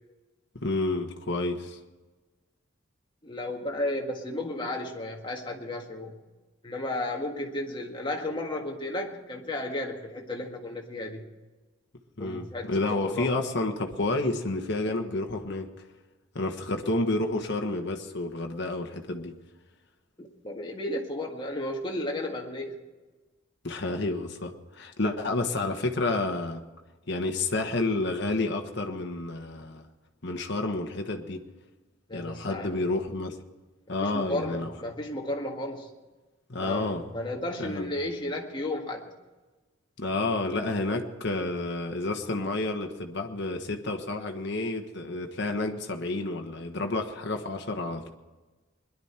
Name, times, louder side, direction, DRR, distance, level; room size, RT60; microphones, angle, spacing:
voice 1, 0.6-1.8 12.2-15.7 16.3-19.3 23.6-26.6 27.1-29.8 30.2-31.4 32.1-33.4 33.9-34.7 36.5-37.0 37.6-37.9 40.0-48.1, left 2 dB, 55° left, 4 dB, 1.4 m, -30 dB
voice 2, 3.2-6.1 6.6-11.3 12.2-13.4 20.2-22.7 32.1-32.9 33.9-35.9 36.6-39.1, left 1 dB, 25° left, 1 dB, 1.8 m, -33 dB
21.5 x 11.5 x 4.4 m, 1.2 s
head